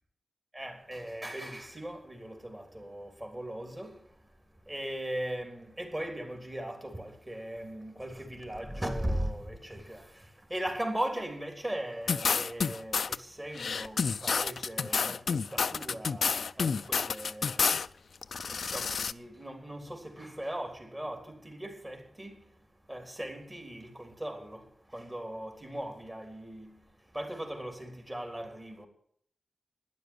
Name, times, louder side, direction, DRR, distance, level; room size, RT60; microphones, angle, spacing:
voice 1, 0.5-3.9 4.7-10.0 10.5-13.0 13.4-16.3 16.6-17.7 18.6-22.3 22.9-24.6 24.9-26.7 27.1-28.9, right 1 dB, 20° right, 3.4 m, -38 dB
sound 1, 12.1-13.2 13.6-17.9 18.2-19.1, left 5 dB, 80° left, 0.5 m, -29 dB
12.0 x 10.5 x 9.5 m
wide cardioid pair, 130°, 0 cm